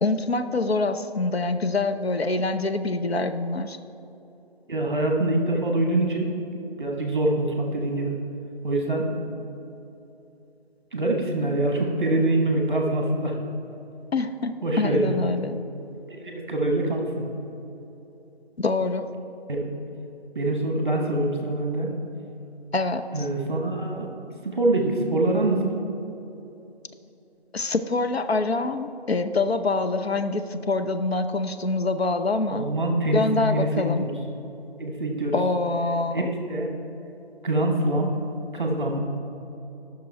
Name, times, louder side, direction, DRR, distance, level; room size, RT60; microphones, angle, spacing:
voice 1, 0.0-3.8 14.1-15.6 18.6-19.1 22.7-23.3 27.5-32.7 33.1-34.1 35.3-36.3, left 3 dB, 75° left, 8 dB, 0.7 m, -25 dB
voice 2, 4.7-6.4 6.8-8.1 8.6-9.1 10.9-13.4 14.6-15.1 16.1-17.3 19.5-19.7 20.3-21.9 23.1-24.1 24.4-25.7 32.5-34.1 34.8-35.4 36.1-36.7 37.4-38.1 38.5-39.0, right 1 dB, 25° right, 1 dB, 1.3 m, -24 dB
12.0 x 6.1 x 4.5 m, 3.0 s
figure-of-eight pair, 165°, 32 cm